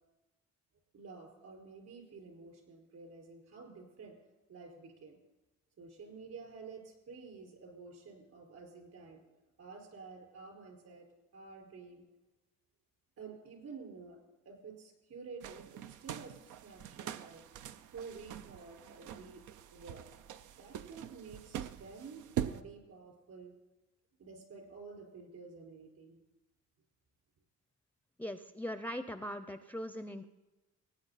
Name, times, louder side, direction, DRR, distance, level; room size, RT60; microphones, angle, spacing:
voice 1, 0.9-4.1 4.5-5.2 5.8-9.2 9.6-11.1 11.3-12.0 13.2-14.2 14.4-17.4 17.9-19.4 19.7-20.1 20.6-23.5 24.2-26.2, right 4 dB, 60° right, 1 dB, 4.9 m, -50 dB
sound 1, 15.4-22.6, right 10 dB, 85° right, 0.6 m, -43 dB
voice 2, 28.2-30.3, equal, 5° left, 10 dB, 0.5 m, -40 dB
17.5 x 9.4 x 4.1 m, 1.1 s
cardioid pair, 90°, 30 cm